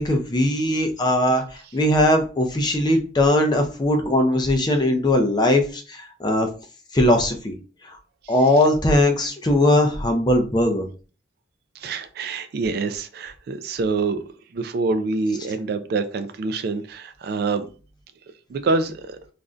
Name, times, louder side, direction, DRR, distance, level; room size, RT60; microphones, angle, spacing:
voice 1, 0.0-1.4 1.7-6.5 6.9-7.6 8.3-10.9, left 1 dB, 20° left, 4 dB, 0.4 m, -19 dB
voice 2, 11.7-14.2 14.5-17.7 18.5-19.2, right 3 dB, 55° right, 9 dB, 0.3 m, -26 dB
2.5 x 2.1 x 3.6 m, 0.36 s
head